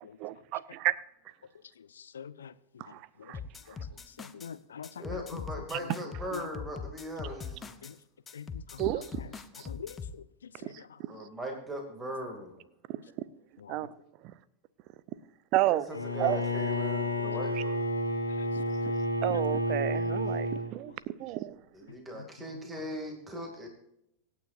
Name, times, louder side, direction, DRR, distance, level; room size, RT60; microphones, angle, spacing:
voice 1, 0.2-1.0 2.8-3.4 5.7-5.8 8.8-9.2 9.6-9.7 10.6-11.1 12.9-13.0 13.7-13.9 15.5-15.8 16.2-16.4 18.9-19.0 19.2-21.5, right 16 dB, 40° right, 0.6 m, -31 dB
voice 2, 2.0-2.5 4.2-5.4 6.3-6.4 7.8-7.9 8.3-8.8 9.7-10.0 10.6-10.7 13.7-13.8 18.3-18.5, left 7 dB, 65° left, 0.6 m, -44 dB
sound 1, 3.3-4.5 4.8-7.9 8.3-10.2, left 5 dB, 20° left, 0.8 m, -42 dB
voice 3, 5.0-7.8 11.1-12.6 15.7-17.8 21.7-23.7, equal, 15° right, 2.4 m, -39 dB
Bowed string instrument, 15.9-20.7, left 1 dB, 85° left, 2.1 m, -30 dB
24.5 x 9.3 x 2.6 m
figure-of-eight pair, 90°, 0 cm